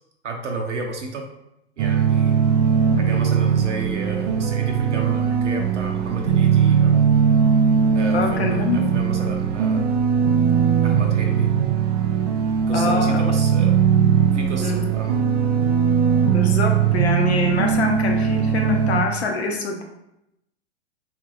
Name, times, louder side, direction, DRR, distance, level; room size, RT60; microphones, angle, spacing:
voice 1, 0.2-1.2 1.8-2.4 3.0-7.0 7.9-10.0 10.8-11.5 12.7-13.8 14.3-15.2, right 3 dB, 90° right, 1 dB, 0.6 m, -31 dB
sound 1, 1.8-19.1, right 7 dB, 35° right, 0.4 m, -19 dB
voice 2, 8.1-9.0 12.7-13.2 14.6-14.9 16.3-19.8, left 3 dB, 65° left, 3 dB, 0.8 m, -25 dB
3.6 x 2.4 x 2.9 m, 0.83 s
figure-of-eight pair, 105°, 35 cm